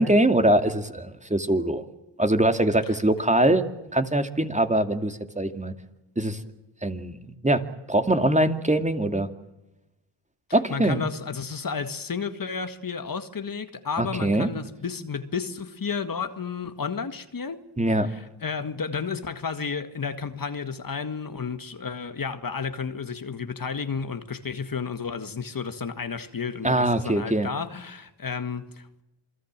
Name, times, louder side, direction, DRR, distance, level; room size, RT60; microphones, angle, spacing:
voice 1, 0.0-1.8 2.2-3.6 3.9-5.7 6.2-6.4 6.8-7.2 7.4-9.3 10.5-11.0 14.0-14.5 17.8-18.1 26.6-27.5, right 1 dB, 15° right, 2.4 m, -22 dB
voice 2, 10.5-17.6 18.0-29.0, left 5 dB, 45° left, 1.9 m, -32 dB
28.0 x 20.5 x 7.5 m
cardioid pair, 65°, 49 cm